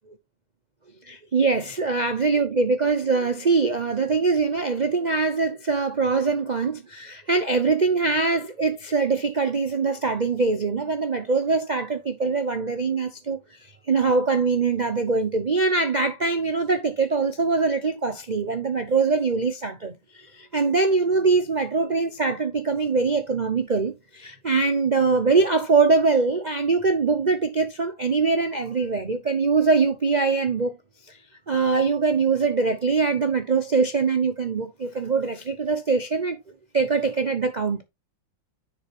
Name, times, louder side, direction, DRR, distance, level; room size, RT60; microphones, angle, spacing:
voice 1, 1.0-30.8 31.1-31.2 31.5-36.4 36.7-37.8, right 4 dB, 85° right, 0.4 m, -23 dB
10.0 x 5.1 x 3.2 m
omnidirectional pair, 2.2 m